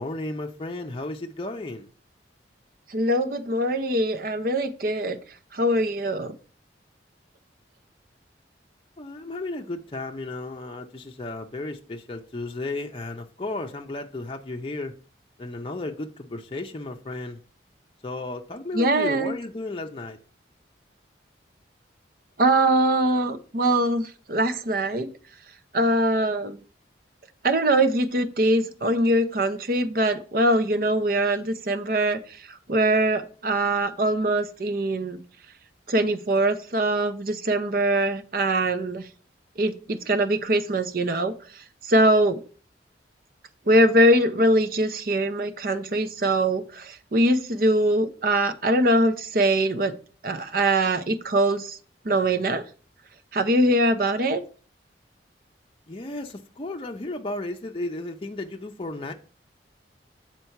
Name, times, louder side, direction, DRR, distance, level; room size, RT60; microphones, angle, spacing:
voice 1, 0.0-1.9 9.0-14.9 15.4-17.4 18.0-20.2 55.9-59.1, left 2 dB, 30° left, 0.6 m, -34 dB
voice 2, 2.9-5.2 5.5-6.3 18.7-19.3 22.4-25.1 25.7-26.6 27.4-32.2 32.7-35.2 35.9-39.1 39.6-41.3 41.9-42.4 43.7-50.0 50.2-51.8 52.0-52.6 53.3-54.4, right 1 dB, 50° right, 0.7 m, -22 dB
6.8 x 4.4 x 4.5 m
head